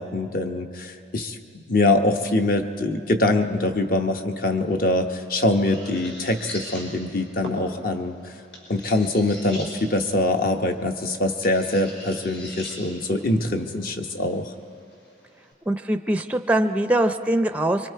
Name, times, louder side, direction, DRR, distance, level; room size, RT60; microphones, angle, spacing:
voice 1, 0.0-8.3 8.7-14.5, left 2 dB, 50° left, 5 dB, 1.0 m, -24 dB
sound 1, 4.6-15.5, left 1 dB, 70° left, 4.8 m, -41 dB
voice 2, 15.7-17.9, right 1 dB, 10° right, 8 dB, 0.5 m, -22 dB
25.0 x 23.5 x 4.7 m, 2.4 s
head